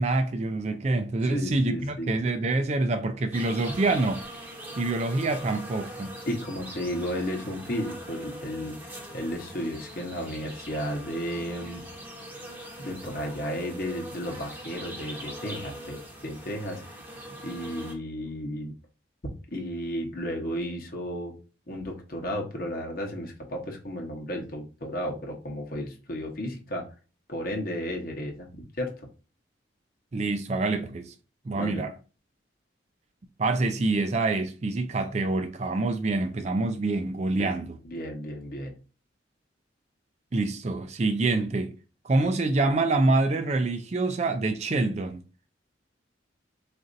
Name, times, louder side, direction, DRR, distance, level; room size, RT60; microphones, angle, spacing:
voice 1, 0.0-4.3 4.8-6.1 30.1-31.1 31.5-31.9 33.4-37.8 40.3-41.7 42.0-45.2, right 2 dB, 35° right, 0.3 m, -26 dB
voice 2, 1.3-2.1 6.3-11.8 12.8-16.0 16.2-16.8 17.4-18.7 19.2-21.3 21.7-26.9 27.3-28.5 28.8-28.9 31.5-31.8 37.4-37.5 37.8-38.7, equal, 50° left, 0.9 m, -33 dB
sound 1, 3.3-17.9, equal, 10° right, 0.7 m, -42 dB
4.1 x 2.5 x 2.5 m
head